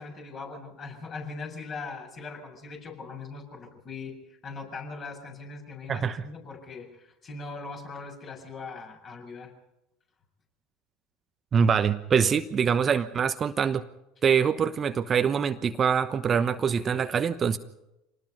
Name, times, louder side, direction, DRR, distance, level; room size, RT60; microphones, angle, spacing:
voice 1, 0.0-9.5, left 4 dB, 35° left, 1 dB, 7.3 m, -40 dB
voice 2, 5.9-6.2 11.5-13.8 14.2-17.6, right 7 dB, 35° right, 10 dB, 1.1 m, -24 dB
26.5 x 19.5 x 5.4 m, 0.90 s
figure-of-eight pair, 75°, 0 cm